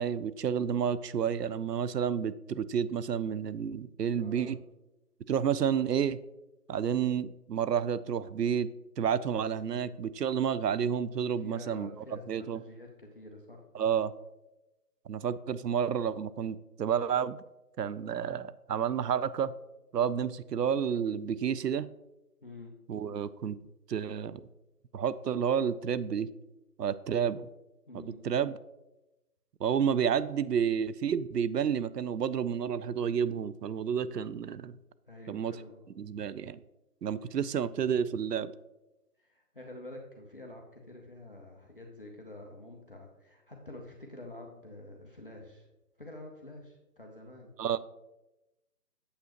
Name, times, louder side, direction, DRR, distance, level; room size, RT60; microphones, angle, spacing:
voice 1, 0.0-4.6 5.3-6.2 6.7-8.7 9.0-11.9 12.3-12.6 13.7-14.1 15.1-17.4 17.8-19.5 19.9-21.9 22.9-23.6 23.9-24.4 24.9-26.3 26.8-27.4 27.9-28.6 29.6-34.7 35.3-35.5 36.0-36.6 37.0-38.5 47.6-47.8, right 8 dB, 85° right, 15 dB, 0.5 m, -30 dB
voice 2, 4.2-4.6 9.7-10.0 11.4-13.6 22.4-22.7 27.9-28.2 35.0-35.9 39.2-45.7 46.0-47.5, left 1 dB, 35° left, 0 dB, 0.6 m, -48 dB
8.4 x 7.4 x 2.9 m, 0.97 s
figure-of-eight pair, 155°, 47 cm